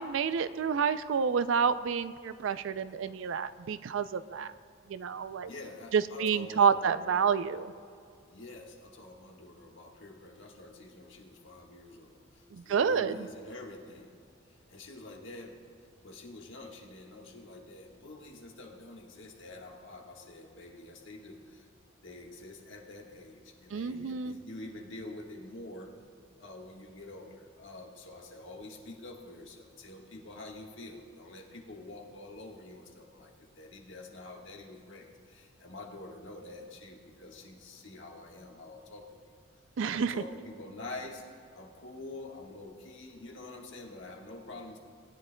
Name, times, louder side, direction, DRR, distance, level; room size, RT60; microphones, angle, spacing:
voice 1, 0.0-4.5 4.9-5.5 5.9-7.7 12.5-13.1 23.7-24.3 39.8-40.1, right 6 dB, 65° right, 13 dB, 0.4 m, -29 dB
voice 2, 5.4-7.4 8.2-14.1 14.5-15.6 16.0-21.7 22.0-25.9 26.4-39.3 39.8-44.8, left 2 dB, 65° left, 0 dB, 1.5 m, -47 dB
19.0 x 10.5 x 2.2 m, 2.4 s
head